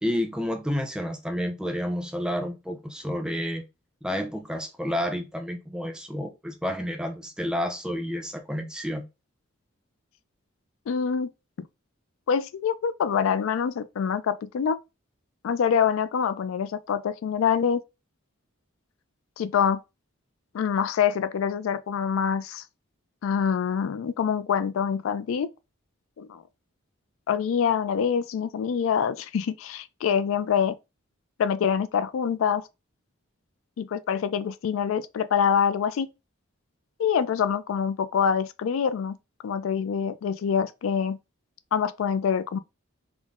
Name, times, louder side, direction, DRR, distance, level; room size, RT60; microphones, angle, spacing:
voice 1, 0.0-3.7 4.0-9.1, equal, 5° right, 0.3 m, -30 dB
voice 2, 10.9-11.3 12.3-14.8 15.4-17.8 19.4-19.8 20.5-22.6 23.2-25.5 26.2-26.4 27.3-30.8 31.4-32.7 33.8-36.1 37.0-39.2 39.4-41.2 41.7-42.6, left 7 dB, 75° left, 0.3 m, -25 dB
3.7 x 2.0 x 3.5 m
head